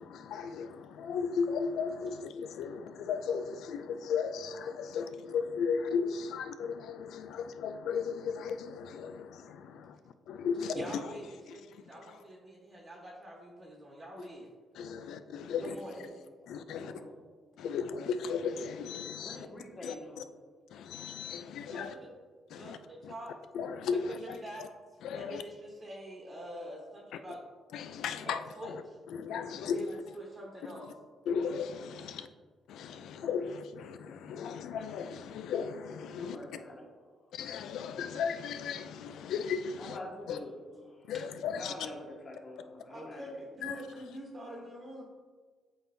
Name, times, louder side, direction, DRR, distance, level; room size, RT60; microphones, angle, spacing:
voice 1, 0.0-10.0 10.3-11.0 11.5-11.6 14.8-15.8 16.5-16.9 17.6-19.5 19.8-19.9 20.7-21.9 22.5-22.8 23.0-23.1 23.5-24.7 25.0-25.4 27.7-28.8 29.1-29.8 30.7-30.8 31.3-32.3 32.7-36.4 37.3-40.0 40.3-40.4 41.1-41.7 43.6-43.8, left 6 dB, 80° left, 10 dB, 0.4 m, -36 dB
voice 2, 10.7-14.5 15.6-16.1 21.7-22.1 22.5-23.3 23.9-24.7 25.1-27.4 28.2-29.0 29.5-30.9 32.0-32.1 42.9-45.0, right 1 dB, 30° right, -3 dB, 1.2 m, -45 dB
voice 3, 15.4-17.2 19.2-20.3 36.1-37.2 39.8-41.2 41.5-43.3, left 1 dB, 45° left, -2 dB, 1.7 m, -47 dB
7.8 x 4.4 x 2.7 m, 1.5 s
cardioid pair, 90°, 0 cm